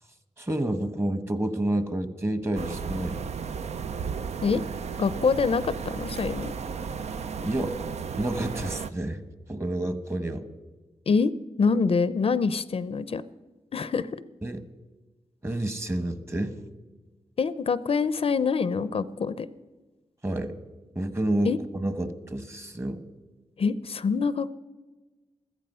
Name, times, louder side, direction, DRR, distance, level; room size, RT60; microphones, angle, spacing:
voice 1, 0.4-3.2 7.4-7.8 8.2-9.2 9.5-10.5 14.4-14.6 15.4-16.6 20.2-20.5 20.9-23.0, right 1 dB, 20° right, 11 dB, 1.2 m, -29 dB
sound 1, 2.5-8.9, right 6 dB, 75° right, 0.6 m, -34 dB
voice 2, 5.0-6.5 11.1-11.3 11.6-13.2 13.7-14.1 17.4-19.5 21.5-21.6 23.6-24.5, left 5 dB, 60° left, 16 dB, 0.5 m, -25 dB
15.0 x 14.0 x 5.5 m, 1.2 s
wide cardioid pair, 90°, 11 cm